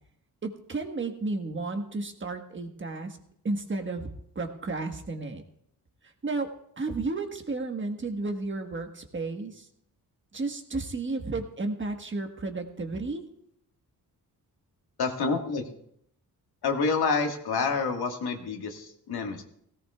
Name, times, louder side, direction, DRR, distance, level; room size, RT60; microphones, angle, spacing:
voice 1, 0.4-3.2 3.4-4.1 4.3-5.4 6.2-6.5 6.8-9.7 10.3-13.2, right 3 dB, 30° right, 4 dB, 1.4 m, -32 dB
voice 2, 15.0-15.7 16.6-19.4, left 4 dB, 80° left, 3 dB, 1.8 m, -28 dB
17.5 x 17.0 x 2.4 m, 0.70 s
cardioid pair, 115°, 37 cm